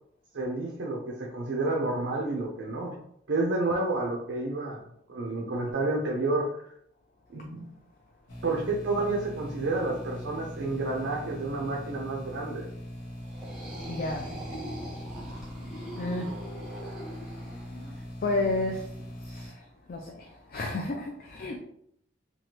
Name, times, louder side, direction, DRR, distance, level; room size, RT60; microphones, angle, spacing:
voice 1, 0.3-3.0 3.3-4.8 5.1-6.6 7.3-7.7 8.4-12.7, right 2 dB, 65° right, -1 dB, 0.5 m, -30 dB
sound 1, 8.3-19.5, equal, 75° left, 0.9 m, -41 dB
sound 2, 13.2-18.0, right 1 dB, 5° right, 0.9 m, -42 dB
voice 2, 13.9-14.3 16.0-16.3 18.2-18.8 19.3-19.5 19.9-21.6, left 2 dB, 45° left, 1 dB, 0.3 m, -31 dB
3.0 x 2.3 x 2.9 m, 0.70 s
head